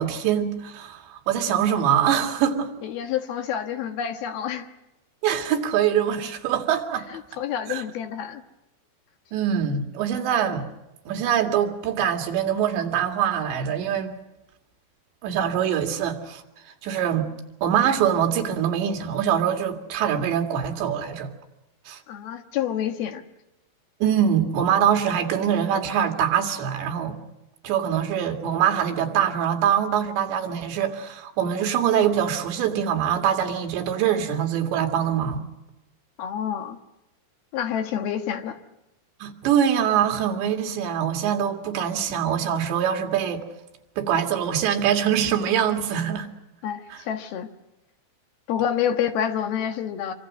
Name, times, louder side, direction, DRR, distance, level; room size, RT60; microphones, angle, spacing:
voice 1, 0.0-2.7 5.2-7.1 7.7-7.8 9.3-10.7 11.1-14.1 15.2-16.4 16.8-17.3 17.6-21.3 21.9-22.0 24.0-27.2 27.6-35.4 39.2-43.4 44.0-46.3 46.9-47.0, right 9 dB, 85° right, 4 dB, 4.3 m, -23 dB
voice 2, 2.8-4.7 7.1-8.4 22.1-23.2 36.2-36.8 37.5-38.6 46.6-47.5 48.5-50.1, left 9 dB, 65° left, 7 dB, 3.1 m, -28 dB
26.5 x 25.0 x 6.3 m, 0.95 s
omnidirectional pair, 5.0 m